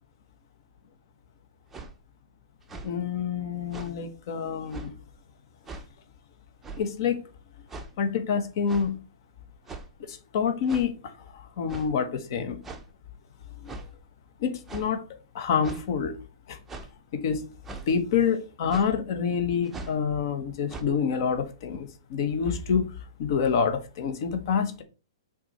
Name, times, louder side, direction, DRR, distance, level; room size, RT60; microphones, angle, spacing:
sound 1, 1.7-1.9 2.6-2.9 3.7-3.9 4.7-4.9 5.6-5.9 6.6-6.9 7.7-7.9 8.7-8.9 9.7-10.0 10.7-10.9 11.7-11.9 12.6-12.9 13.6-13.9 14.7-14.9 15.6-15.8 16.7-16.9 17.6-17.9 18.7-18.9 19.6-20.0 20.7-20.8, right 3 dB, 10° right, 0.7 m, -40 dB
voice 1, 2.8-4.9 6.8-7.2 8.0-9.0 10.1-12.6 13.6-13.7 14.4-15.0 15.3-16.1 16.5-16.6 17.1-17.5 17.9-22.8 23.2-24.8, left 6 dB, 45° left, 1.1 m, -27 dB
5.8 x 3.9 x 4.2 m
hypercardioid pair, 160°, 3 cm